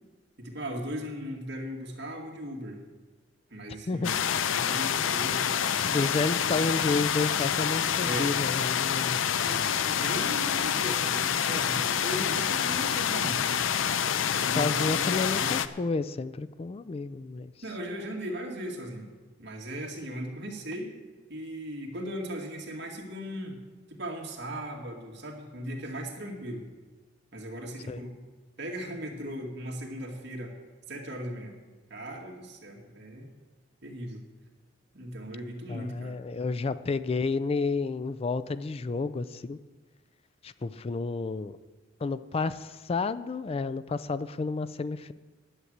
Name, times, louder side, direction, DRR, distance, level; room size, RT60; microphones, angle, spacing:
voice 1, 0.4-2.8 3.5-4.2 4.5-5.9 8.0-8.3 9.4-13.7 14.3-15.6 17.6-19.1 19.4-21.0 21.3-23.6 23.9-26.6 27.3-28.1 28.6-30.5 30.9-31.6 31.9-33.3 33.8-34.2 34.9-36.2, equal, 60° right, 0 dB, 2.2 m, -38 dB
sound 1, 4.0-15.7, left 8 dB, 85° left, 0.5 m, -27 dB
voice 2, 5.9-9.2 14.6-17.5 27.9-28.0 35.7-39.6 40.4-41.6 42.0-45.1, left 3 dB, 30° left, 14 dB, 0.3 m, -31 dB
11.0 x 7.4 x 8.0 m, 1.3 s
head